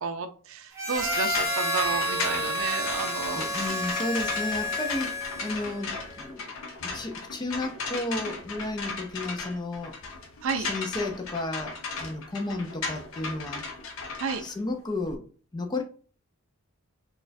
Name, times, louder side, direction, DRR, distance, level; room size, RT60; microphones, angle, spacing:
voice 1, 0.0-3.8 10.4-10.7 14.2-14.4, right 5 dB, 65° right, 0.4 m, -32 dB
Harmonica, 0.7-5.8, left 1 dB, 15° right, 0.7 m, -30 dB
sound 1, 1.0-15.2, left 4 dB, 70° left, 0.6 m, -36 dB
voice 2, 3.3-6.5 6.8-10.0 10.6-13.6 14.4-15.2 15.5-15.8, left 2 dB, 20° left, 0.4 m, -33 dB
4.1 x 2.3 x 2.6 m
head